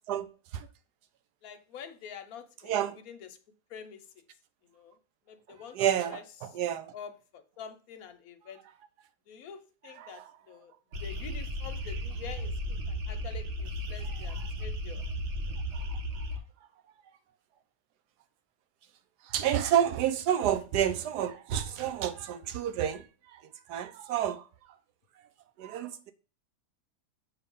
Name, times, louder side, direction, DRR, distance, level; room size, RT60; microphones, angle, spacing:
voice 1, 1.4-3.3 3.7-4.0 4.7-4.9 5.3-5.8 6.1-6.2 6.9-8.6 9.3-10.2 10.5-10.7 11.0-12.5 12.9-15.0, left 7 dB, 65° left, 1.1 m, -46 dB
voice 2, 2.6-3.0 5.7-6.9 10.0-10.3 15.7-16.0 19.3-23.0 23.7-24.4 25.6-26.1, right 10 dB, 75° right, 1.2 m, -29 dB
sound 1, 10.9-16.4, equal, 50° right, 1.1 m, -35 dB
6.9 x 3.3 x 5.3 m
omnidirectional pair, 1.8 m